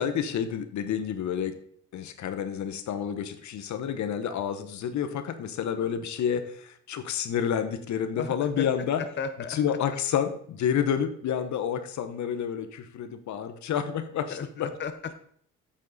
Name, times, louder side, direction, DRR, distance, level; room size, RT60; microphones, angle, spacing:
voice 1, 0.0-1.5 1.9-9.0 9.5-14.7, left 8 dB, 70° left, 9 dB, 1.1 m, -29 dB
voice 2, 8.2-8.7 9.0-9.8 14.3-15.1, left 6 dB, 35° left, 9 dB, 0.8 m, -35 dB
8.8 x 7.4 x 4.1 m, 0.62 s
cardioid pair, 90°, 30 cm